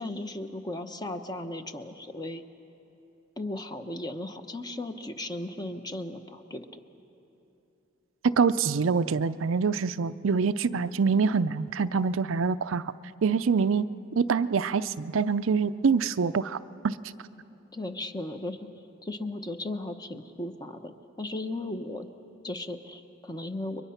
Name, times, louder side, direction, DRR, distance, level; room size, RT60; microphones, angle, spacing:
voice 1, 0.0-2.4 3.4-6.8 17.7-18.6 19.0-22.1 22.4-23.8, left 1 dB, 20° left, 7 dB, 0.9 m, -36 dB
voice 2, 8.2-12.8 13.2-13.8 14.2-16.6 16.8-17.0, right 5 dB, 80° right, 12 dB, 0.5 m, -25 dB
30.0 x 23.0 x 5.8 m, 3.0 s
head